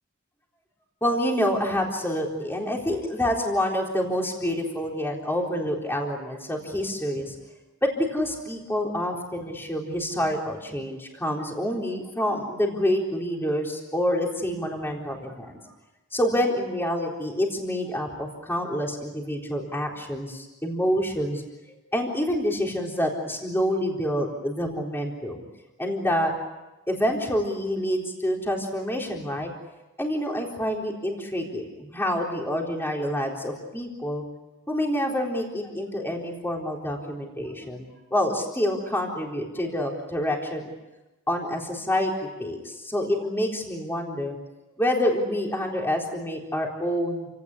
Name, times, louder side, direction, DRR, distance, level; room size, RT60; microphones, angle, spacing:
voice 1, 1.0-7.3 7.8-15.6 16.1-21.4 21.9-25.4 25.8-26.3 26.9-29.5 30.0-34.3 34.7-40.7 41.3-44.4 44.8-47.3, equal, 10° left, 0 dB, 4.0 m, -27 dB
28.5 x 18.0 x 9.7 m, 1.1 s
head